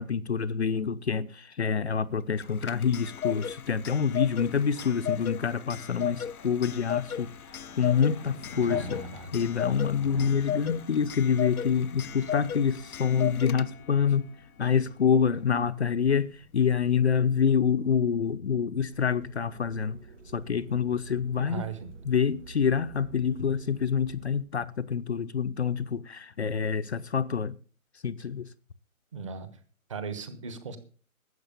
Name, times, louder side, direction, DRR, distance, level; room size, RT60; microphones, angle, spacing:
voice 1, 0.0-7.3 7.8-9.0 9.3-14.3 14.6-20.0 20.3-21.7 22.1-27.6 28.0-28.5, left 7 dB, 50° left, 0.7 m, -27 dB
Clock, 2.4-14.0, left 9 dB, 80° left, 0.8 m, -35 dB
sound 1, 3.6-14.8, left 1 dB, 5° right, 0.7 m, -48 dB
voice 2, 8.6-9.3 21.4-21.9 29.1-29.6 29.9-30.8, right 5 dB, 20° right, 1.2 m, -38 dB
sound 2, 18.9-24.4, right 5 dB, 55° right, 3.7 m, -49 dB
12.5 x 8.0 x 6.8 m
hypercardioid pair, 165°, 43 cm